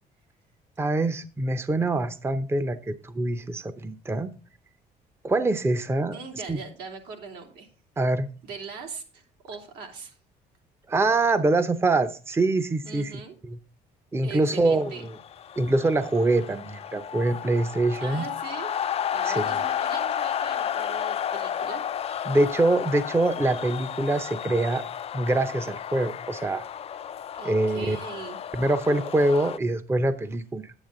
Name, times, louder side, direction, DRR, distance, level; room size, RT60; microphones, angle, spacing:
voice 1, 0.8-4.3 5.2-6.2 6.5-6.6 8.0-8.3 10.9-13.1 13.5-13.6 14.1-15.1 15.6-18.3 19.3-19.5 22.3-24.8 25.1-26.6 27.4-28.0 28.5-30.7, right 2 dB, 15° right, 11 dB, 0.7 m, -24 dB
voice 2, 6.1-7.7 8.4-10.1 12.8-13.3 14.2-15.1 18.0-18.7 19.1-21.8 27.4-28.4, right 5 dB, 80° right, 2 dB, 2.9 m, -40 dB
sound 1, 14.8-29.6, left 9 dB, 35° left, 0.4 m, -32 dB
10.5 x 9.0 x 3.8 m, 0.35 s
cardioid pair, 110°, 17 cm